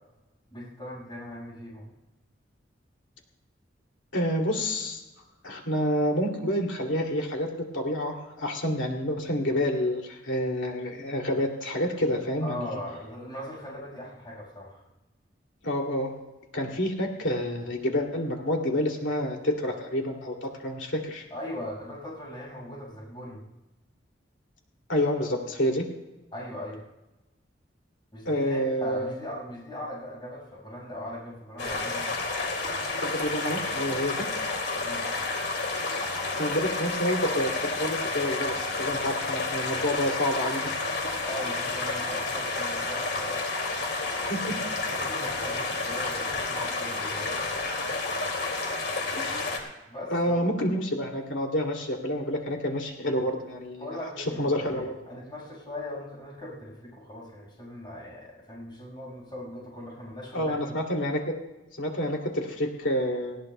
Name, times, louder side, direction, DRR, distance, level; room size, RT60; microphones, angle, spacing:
voice 1, 0.5-1.9 12.4-14.8 21.3-23.4 26.3-26.8 28.1-32.1 34.8-35.1 41.2-43.8 44.9-47.6 49.9-50.4 53.8-60.8, left 1 dB, 25° left, -5 dB, 5.5 m, -39 dB
voice 2, 4.1-5.0 5.4-12.7 15.6-16.1 16.5-21.3 24.9-25.9 28.2-29.1 33.0-34.3 36.4-40.8 44.3-44.6 49.1-49.5 50.1-54.0 54.4-54.9 60.3-61.3 61.8-63.4, equal, 80° left, 1 dB, 2.6 m, -28 dB
sound 1, 31.6-49.6, left 3 dB, 60° left, 2.4 m, -30 dB
19.5 x 16.5 x 2.2 m, 1.0 s
head